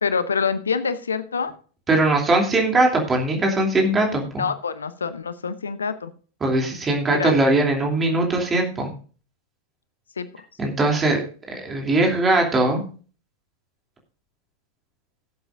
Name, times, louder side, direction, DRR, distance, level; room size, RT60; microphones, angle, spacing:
voice 1, 0.0-1.5 4.4-6.1 7.1-7.3 10.2-10.3, left 5 dB, 70° left, 14 dB, 0.7 m, -26 dB
voice 2, 1.9-4.4 6.4-8.9 10.6-12.8, right 2 dB, 20° right, 1 dB, 2.8 m, -20 dB
17.5 x 7.9 x 2.5 m, 0.38 s
figure-of-eight pair, 90°, 0 cm